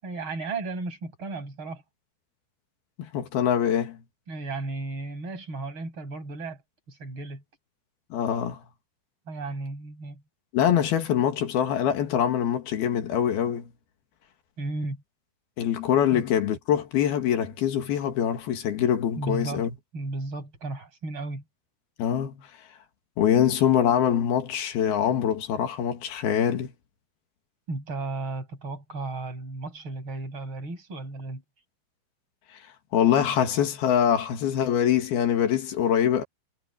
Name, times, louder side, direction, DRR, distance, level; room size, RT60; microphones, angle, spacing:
voice 1, 0.0-1.8 4.3-6.6 6.9-7.4 9.3-10.2 14.6-15.0 16.1-16.2 19.2-19.7 19.9-21.4 27.7-31.4, right 3 dB, 30° right, 8.0 m, -34 dB
voice 2, 3.0-4.0 8.1-8.6 10.5-13.7 15.6-19.7 22.0-22.4 23.2-26.7 32.9-36.2, left 9 dB, 65° left, 3.8 m, -24 dB
omnidirectional pair, 5.0 m